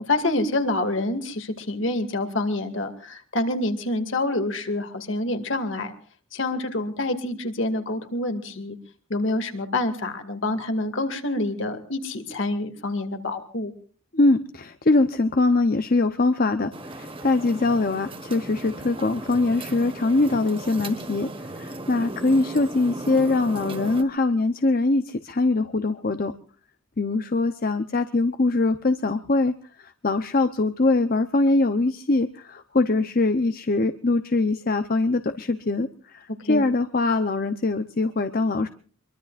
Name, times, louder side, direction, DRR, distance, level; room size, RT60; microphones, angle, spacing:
voice 1, 0.1-5.9 6.3-8.8 9.1-13.7 36.4-36.6, left 2 dB, 60° left, 7 dB, 2.4 m, -27 dB
voice 2, 14.1-26.3 27.0-29.5 29.8-38.7, left 2 dB, 45° left, 8 dB, 0.8 m, -23 dB
sound 1, 16.7-24.0, right 1 dB, 25° right, 1.5 m, -36 dB
24.5 x 23.0 x 2.5 m, 0.42 s
head